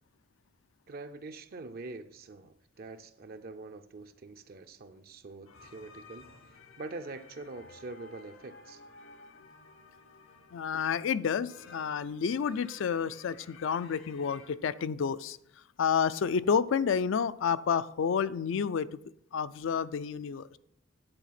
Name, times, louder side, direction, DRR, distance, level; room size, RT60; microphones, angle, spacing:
voice 1, 0.9-8.8, right 3 dB, 50° right, 8 dB, 0.5 m, -44 dB
sound 1, 5.5-14.6, left 3 dB, 85° left, 0.8 m, -54 dB
voice 2, 10.5-15.4 15.8-18.9 19.3-20.6, left 6 dB, 70° left, 16 dB, 0.4 m, -30 dB
9.8 x 4.1 x 5.7 m, 0.73 s
head